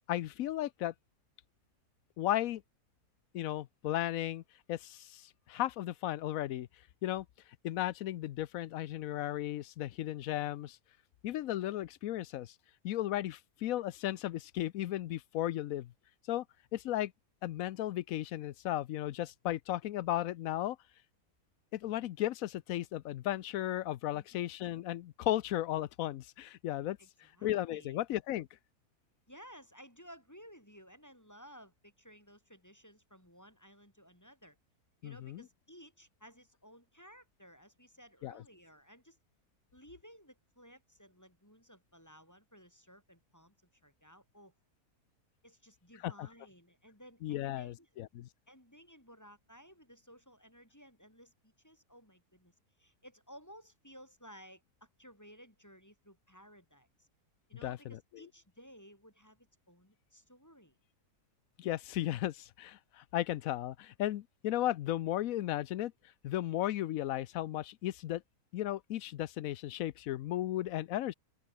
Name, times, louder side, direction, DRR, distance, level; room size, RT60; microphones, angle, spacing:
voice 1, 0.1-0.9 2.2-2.6 3.3-4.4 4.7-6.7 7.0-7.3 7.6-10.8 11.2-12.5 12.8-15.9 16.3-16.4 16.7-17.1 17.4-20.8 21.7-27.0 27.4-28.5 35.0-35.4 38.2-38.3 46.0-46.3 47.2-48.3 57.6-57.8 61.6-65.9 66.2-68.2 68.5-71.1, left 13 dB, 70° left, 1.0 m, -35 dB
voice 2, 24.1-24.4 27.0-28.0 29.3-34.6 35.0-39.2 39.7-43.6 43.8-44.5 45.4-47.9 48.5-57.1 57.5-60.8, equal, 10° left, 5.5 m, -57 dB
open air
omnidirectional pair, 1.6 m